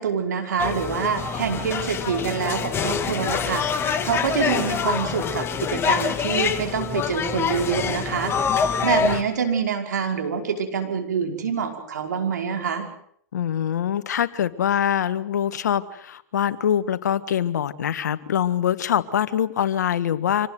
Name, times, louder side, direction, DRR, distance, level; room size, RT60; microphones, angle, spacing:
voice 1, 0.0-3.7 4.0-8.3 8.8-12.9, right 6 dB, 85° right, 4 dB, 5.3 m, -26 dB
sound 1, 0.6-9.2, left 6 dB, 25° left, 2.7 m, -25 dB
voice 2, 13.3-20.5, left 9 dB, 80° left, 12 dB, 1.7 m, -24 dB
26.5 x 19.0 x 8.0 m, 0.67 s
hypercardioid pair, 115°, 9 cm